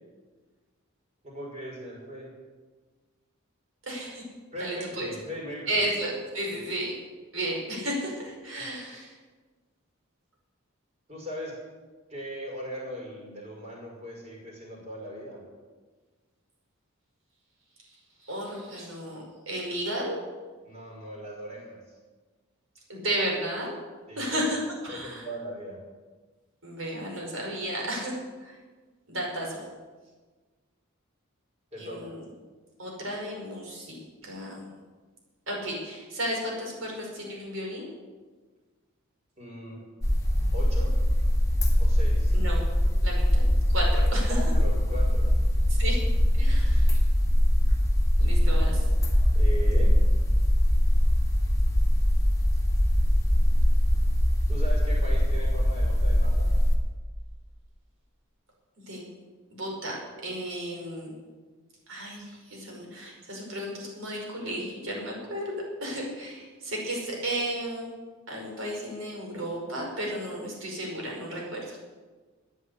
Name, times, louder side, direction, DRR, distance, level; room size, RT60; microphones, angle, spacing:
voice 1, 1.2-2.3 4.5-5.8 6.5-6.6 11.1-11.6 12.1-15.4 20.6-21.8 24.1-24.5 24.9-25.8 31.7-32.1 39.4-39.9 40.5-40.9 41.8-42.3 44.3-45.4 49.3-50.0 54.5-56.5, equal, 30° right, -2 dB, 5.6 m, -39 dB
voice 2, 3.8-4.2 4.6-5.1 5.7-6.9 7.3-9.1 18.2-20.2 22.9-23.7 24.2-25.3 26.6-28.6 29.1-29.6 31.8-32.2 32.8-34.0 34.2-34.7 35.5-37.8 42.3-42.6 43.0-43.4 43.7-44.4 45.7-46.0 46.3-46.9 48.2-48.9 58.9-59.0 59.5-60.0 60.2-61.1 61.9-67.9 68.3-71.8, right 1 dB, 65° right, -1 dB, 5.2 m, -33 dB
sound 1, 40.0-56.8, equal, 15° left, 1.9 m, -22 dB
14.0 x 9.6 x 8.3 m, 1.4 s
head